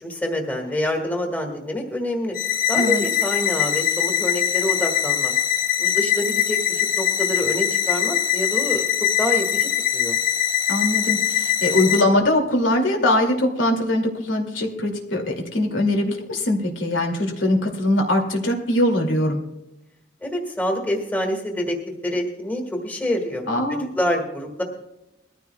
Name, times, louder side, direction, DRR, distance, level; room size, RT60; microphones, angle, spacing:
voice 1, 0.0-2.4 2.7-5.3 5.8-8.8 9.2-10.2 20.2-21.8 22.0-23.4 23.7-24.6, left 1 dB, 10° left, 1 dB, 1.8 m, -26 dB
sound 1, 2.4-12.0, left 10 dB, 45° left, 1.0 m, -22 dB
voice 2, 10.7-19.4 23.5-23.9, left 1 dB, 90° left, 2 dB, 2.5 m, -22 dB
21.5 x 14.5 x 2.3 m, 0.91 s
head